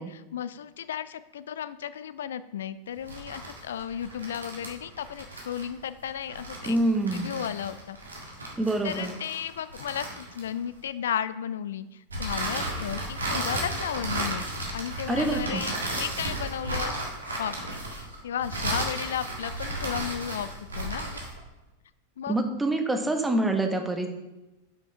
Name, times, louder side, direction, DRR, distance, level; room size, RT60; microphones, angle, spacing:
voice 1, 0.0-6.8 7.1-8.0 8.8-16.9 17.4-20.5 20.8-21.2 22.2-22.4, left 9 dB, 60° left, 15 dB, 0.4 m, -34 dB
sound 1, 3.0-10.8 12.1-21.4, right 1 dB, 75° right, 1.8 m, -34 dB
voice 2, 6.7-7.3 8.6-9.1 15.1-15.6 22.3-24.1, right 2 dB, 10° right, 5 dB, 1.1 m, -26 dB
7.2 x 6.0 x 4.5 m, 1.0 s
figure-of-eight pair, 90°, 0 cm